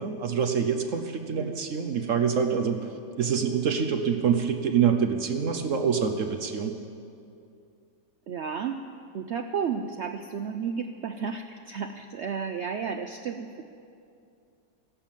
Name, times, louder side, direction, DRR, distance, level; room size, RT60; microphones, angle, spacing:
voice 1, 0.0-2.8 3.2-6.7, right 7 dB, 55° right, 6 dB, 1.0 m, -26 dB
voice 2, 1.3-1.8 8.3-8.8 9.1-13.6, right 6 dB, 85° right, 7 dB, 0.6 m, -33 dB
15.0 x 11.5 x 7.3 m, 2.5 s
omnidirectional pair, 1.8 m